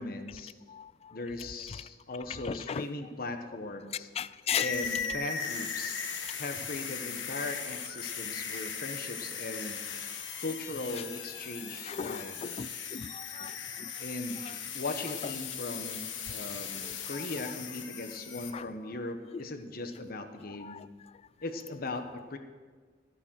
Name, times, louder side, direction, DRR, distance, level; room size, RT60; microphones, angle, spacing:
voice 1, 0.0-0.5 1.1-4.1 4.5-6.0 6.3-9.8 10.4-12.4 14.0-14.4 14.7-20.8 21.4-22.4, left 2 dB, 55° left, 7 dB, 1.2 m, -38 dB
voice 2, 0.7-1.2 1.7-1.8 2.3-2.9 4.1-4.7 5.0-5.2 10.9-11.0 11.8-13.9 14.4-14.6 15.2-15.3 16.8-17.3 18.5-18.7 20.5-20.9, left 7 dB, 35° left, 17 dB, 0.3 m, -38 dB
sound 1, 4.5-18.5, left 6 dB, 80° left, 1.4 m, -38 dB
13.5 x 9.7 x 6.4 m, 1.5 s
head